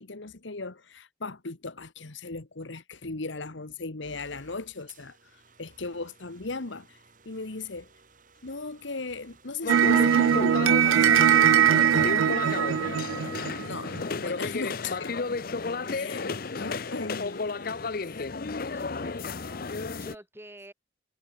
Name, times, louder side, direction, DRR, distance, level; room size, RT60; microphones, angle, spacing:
voice 1, 0.0-7.9 8.4-12.7 13.6-13.9 14.2-15.1 15.8-17.9, left 3 dB, 70° left, 1.4 m, -38 dB
sound 1, 4.0-18.3, right 4 dB, 45° right, 5.7 m, -57 dB
sound 2, 9.6-20.1, left 4 dB, 50° left, 0.7 m, -33 dB
sound 3, 9.7-14.0, right 9 dB, 90° right, 0.4 m, -21 dB
voice 2, 18.7-20.7, right 1 dB, 10° right, 6.7 m, -49 dB
head